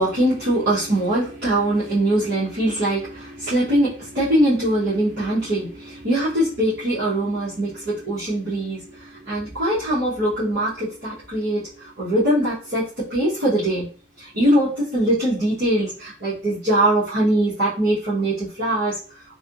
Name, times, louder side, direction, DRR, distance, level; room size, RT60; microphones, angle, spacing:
voice 1, 0.0-13.9 14.2-19.0, right 1 dB, 50° right, -12 dB, 1.2 m, -22 dB
3.3 x 2.7 x 2.5 m, 0.38 s
head